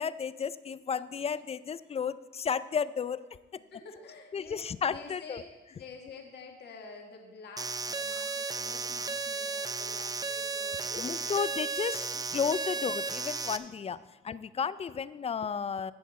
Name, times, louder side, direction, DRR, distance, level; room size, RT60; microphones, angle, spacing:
voice 1, 0.0-3.2 4.3-5.4 10.9-15.9, left 6 dB, 30° left, 16 dB, 0.4 m, -33 dB
voice 2, 3.7-5.4 5.7-11.5 11.9-12.9, left 4 dB, 60° left, 2 dB, 1.6 m, -49 dB
sound 1, 7.6-13.6, right 4 dB, 20° right, 0.5 m, -34 dB
15.5 x 6.5 x 4.3 m, 1.3 s
cardioid pair, 90°, 20 cm